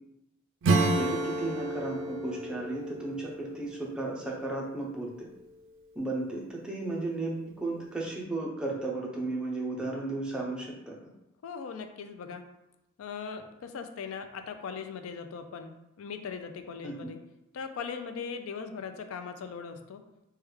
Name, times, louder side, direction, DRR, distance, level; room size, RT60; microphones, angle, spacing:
Acoustic guitar / Strum, 0.6-4.9, right 2 dB, 60° right, 0.3 m, -31 dB
voice 1, 0.8-5.3 6.0-10.9 16.8-17.1, right 2 dB, 5° right, -3 dB, 0.5 m, -34 dB
voice 2, 11.4-12.4 13.0-17.2 17.5-20.0, left 6 dB, 75° left, 8 dB, 0.3 m, -39 dB
3.3 x 2.2 x 3.2 m, 0.89 s
head